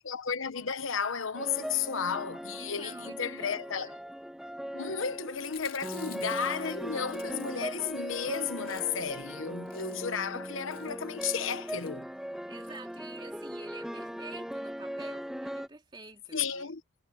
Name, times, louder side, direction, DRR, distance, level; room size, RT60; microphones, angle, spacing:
voice 1, 0.0-3.9 4.7-12.1 16.3-16.8, left 6 dB, 70° left, 0.9 m, -33 dB
sound 1, 1.4-15.7, equal, ahead, 1.6 m, -39 dB
voice 2, 2.6-4.1 4.9-5.2 9.0-9.1 12.5-16.7, right 3 dB, 20° right, 2.9 m, -49 dB
Chewing mastication, 5.3-7.9 8.2-8.3 8.5-9.2 9.6-10.2 10.7-11.0 11.6-11.9 12.6-12.8 13.2-13.3 13.4-13.5, left 10 dB, 40° left, 3.7 m, -51 dB
head